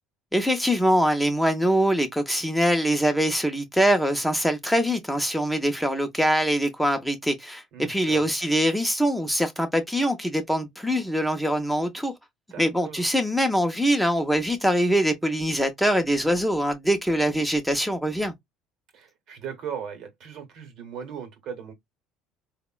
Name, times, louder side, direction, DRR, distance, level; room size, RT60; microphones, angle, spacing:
voice 1, 0.3-12.1 12.6-18.3, equal, ahead, 0.6 m, -23 dB
voice 2, 7.7-8.2 12.5-13.1 18.9-21.7, right 7 dB, 60° right, 0.9 m, -38 dB
3.5 x 2.1 x 2.2 m
supercardioid pair, 100°, 0 cm